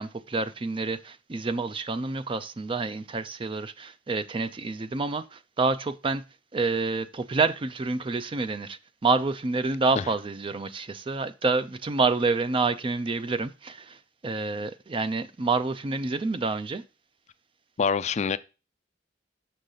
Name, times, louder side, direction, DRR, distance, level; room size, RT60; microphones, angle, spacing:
voice 1, 0.0-6.2 6.5-14.0 14.2-16.8, right 3 dB, 30° right, 0.4 m, -28 dB
voice 2, 17.8-18.4, left 5 dB, 40° left, 0.4 m, -25 dB
6.6 x 6.3 x 3.9 m
head